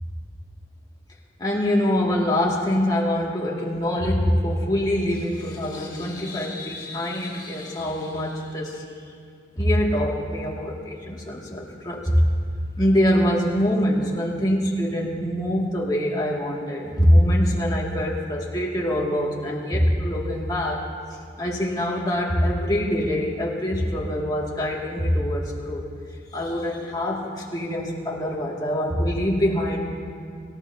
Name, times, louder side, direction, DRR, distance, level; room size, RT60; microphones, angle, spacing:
voice 1, 1.4-8.8 9.6-12.3 12.8-20.9 21.4-25.8 26.3-29.8, equal, 25° left, -3 dB, 2.2 m, -24 dB
27.0 x 14.0 x 2.8 m, 2.2 s
head